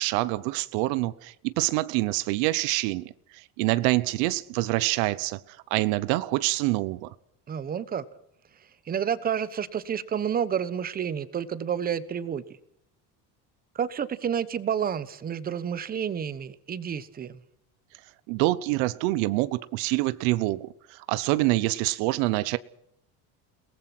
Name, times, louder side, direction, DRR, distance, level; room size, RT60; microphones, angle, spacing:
voice 1, 0.0-3.0 3.6-5.4 5.7-7.1 18.3-22.6, right 19 dB, 85° right, 1.0 m, -26 dB
voice 2, 7.5-8.0 8.9-12.4 13.7-17.4, right 8 dB, 20° right, 1.1 m, -30 dB
29.5 x 19.0 x 6.1 m
cardioid pair, 170°, 40 cm